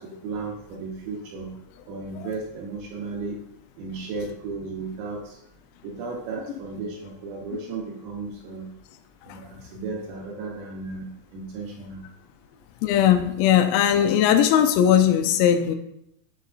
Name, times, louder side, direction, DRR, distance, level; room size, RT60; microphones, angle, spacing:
voice 1, 0.0-3.4 3.8-5.4 5.8-8.7 9.3-12.1, right 4 dB, 80° right, -1 dB, 2.6 m, -35 dB
voice 2, 12.8-15.8, left 10 dB, 85° left, 8 dB, 3.2 m, -19 dB
8.0 x 6.5 x 2.5 m, 0.77 s
omnidirectional pair, 5.9 m